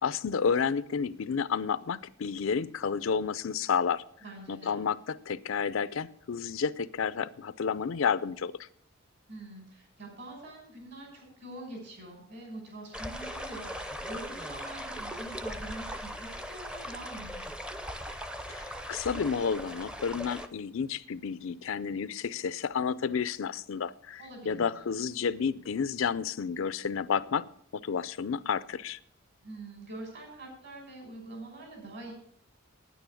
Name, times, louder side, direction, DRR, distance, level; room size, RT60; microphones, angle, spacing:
voice 1, 0.0-4.0 4.5-8.5 18.5-27.5 27.7-29.0, left 6 dB, 70° left, 16 dB, 0.5 m, -31 dB
voice 2, 4.2-4.9 9.3-17.4 24.2-24.7 29.4-32.1, right 1 dB, 55° right, 1 dB, 6.0 m, -45 dB
sound 1, 12.9-20.5, equal, 5° right, 0.6 m, -39 dB
9.8 x 9.2 x 7.0 m, 0.67 s
head